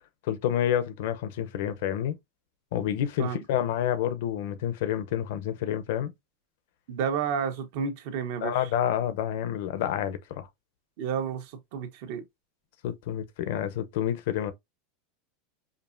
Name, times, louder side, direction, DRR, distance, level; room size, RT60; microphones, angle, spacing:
voice 1, 0.3-2.2 2.7-6.1 8.4-10.5 12.8-14.5, left 10 dB, 70° left, 0.7 m, -29 dB
voice 2, 6.9-8.6 11.0-12.2, right 7 dB, 65° right, 1.1 m, -31 dB
5.1 x 2.5 x 2.6 m
supercardioid pair, 135°, 0 cm